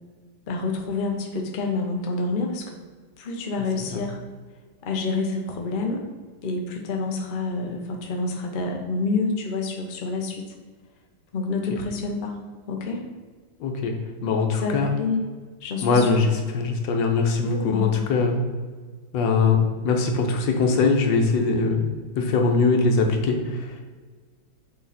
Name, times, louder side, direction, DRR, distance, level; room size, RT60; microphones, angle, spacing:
voice 1, 0.5-2.8 3.2-4.2 4.8-6.1 6.4-10.5 11.3-12.4 12.7-13.0 14.5-15.2 15.6-16.2 17.4-18.0, left 3 dB, 40° left, 1 dB, 0.8 m, -28 dB
voice 2, 13.6-13.9 14.2-14.9 15.8-18.4 19.1-19.6 19.8-21.9 22.2-23.8, left 4 dB, 85° left, 3 dB, 1.6 m, -21 dB
6.6 x 4.3 x 4.2 m, 1.5 s
omnidirectional pair, 1.9 m